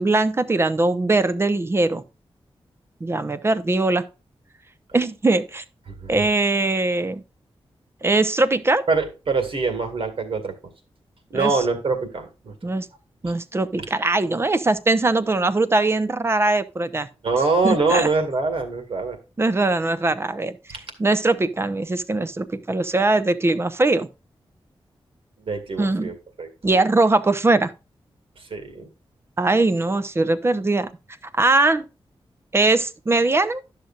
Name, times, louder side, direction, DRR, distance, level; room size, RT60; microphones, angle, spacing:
voice 1, 0.0-2.0 3.0-4.0 4.9-5.6 6.1-7.2 8.0-8.8 11.3-11.6 12.6-12.9 13.2-17.1 17.6-18.1 19.4-20.6 21.0-24.1 25.8-26.1 26.6-27.7 29.4-30.9 31.3-31.9 32.5-33.6, right 2 dB, 25° right, 0.6 m, -21 dB
voice 2, 8.9-10.5 11.3-12.5 13.2-13.3 17.2-19.2 25.4-26.5 28.4-28.9, right 3 dB, 70° right, 2.0 m, -24 dB
11.5 x 6.5 x 2.4 m
wide cardioid pair, 155°, 10 cm